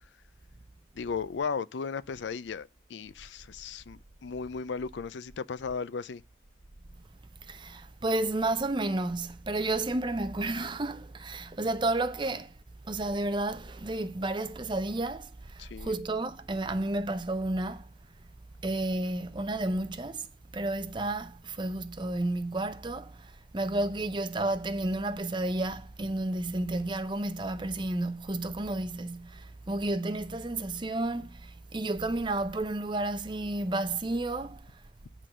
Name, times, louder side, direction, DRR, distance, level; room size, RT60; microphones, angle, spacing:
voice 1, 0.9-6.2 15.6-16.0, left 5 dB, 70° left, 0.4 m, -36 dB
voice 2, 7.5-12.5 12.9-17.9 18.6-20.3 20.5-34.6, right 2 dB, 25° right, 0.6 m, -31 dB
10.0 x 3.8 x 6.1 m
head